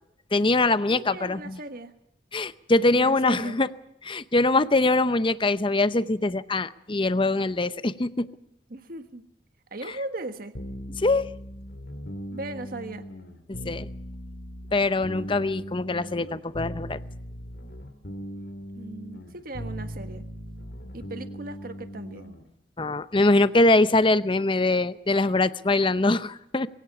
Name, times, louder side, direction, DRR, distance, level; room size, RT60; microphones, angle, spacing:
voice 1, 0.3-1.6 2.3-3.7 4.0-8.3 11.0-11.3 13.5-13.9 14.7-17.0 22.8-26.7, left 2 dB, 30° left, 14 dB, 0.7 m, -23 dB
voice 2, 0.9-1.9 2.9-3.6 8.7-9.2 9.7-10.6 12.3-13.1 18.7-20.2 20.9-22.3, right 2 dB, 55° right, 9 dB, 1.5 m, -38 dB
sound 1, 10.5-22.4, equal, 60° left, 2.6 m, -39 dB
22.0 x 17.0 x 7.1 m, 0.79 s
head